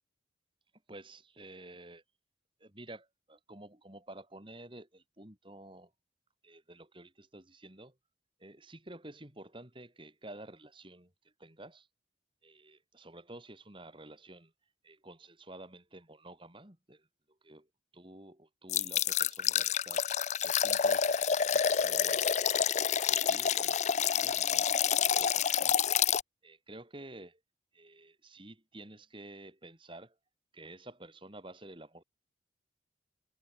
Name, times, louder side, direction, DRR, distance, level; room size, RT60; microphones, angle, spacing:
voice 1, 0.9-2.0 2.6-5.9 6.4-7.9 8.4-11.1 11.4-11.9 12.4-14.5 14.8-17.1 17.4-17.7 17.9-20.1 20.4-25.8 26.4-27.4 27.7-30.2 30.5-32.0, right 1 dB, 25° right, 3.0 m, -51 dB
sound 1, 18.7-26.2, left 8 dB, 35° left, 0.5 m, -28 dB
head